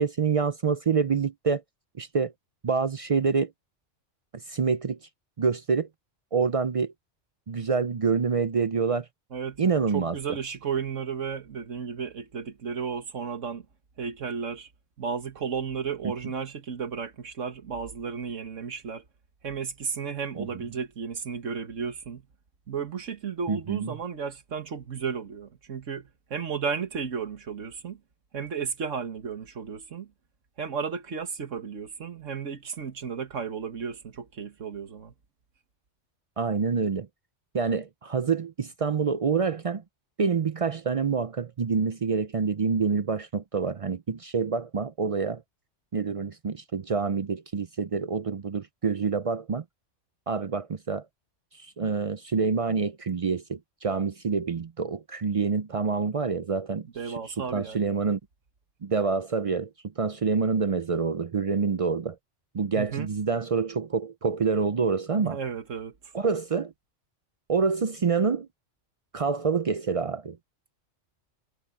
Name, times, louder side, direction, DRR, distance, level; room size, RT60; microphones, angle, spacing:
voice 1, 0.0-1.6 2.0-2.3 2.6-3.5 4.5-5.0 5.4-5.9 6.3-6.9 7.5-9.1 9.6-10.2 20.4-20.5 23.5-23.9 36.4-37.1 37.5-39.8 40.2-45.4 45.9-49.6 50.3-51.0 51.6-58.2 58.8-59.7 60.0-62.2 62.5-65.4 66.1-66.7 67.5-68.5 69.1-70.4, right 5 dB, 50° right, 0.4 m, -27 dB
voice 2, 9.3-13.7 14.0-14.7 15.0-19.0 19.4-22.2 22.7-28.0 28.3-30.1 30.6-35.1 57.0-58.0 62.8-63.1 65.2-65.9, right 6 dB, 85° right, 1.9 m, -33 dB
omnidirectional pair, 1.3 m